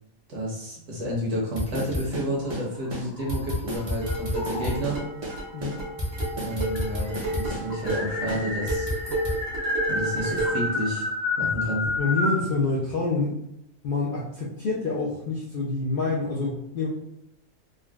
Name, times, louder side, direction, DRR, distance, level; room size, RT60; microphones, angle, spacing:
voice 1, 0.3-5.0 6.4-8.9 9.9-11.1 11.4-11.9, equal, 65° right, -4 dB, 1.3 m, -30 dB
sound 1, 1.6-2.6 2.9-3.0 3.3-5.0 5.2-5.3 5.6-7.6 7.9-8.0 8.3-9.4, equal, 35° right, 0.6 m, -31 dB
sound 2, 2.5-3.8 4.3-5.0 6.0-6.1 6.3-6.4 6.8-12.5, left 2 dB, 80° left, 1.2 m, -30 dB
sound 3, 3.7-10.7, right 1 dB, 80° right, 1.4 m, -32 dB
voice 2, 12.0-13.4 13.8-16.9, left 3 dB, 60° left, -5 dB, 0.5 m, -27 dB
3.8 x 2.2 x 2.3 m, 0.79 s
omnidirectional pair, 1.4 m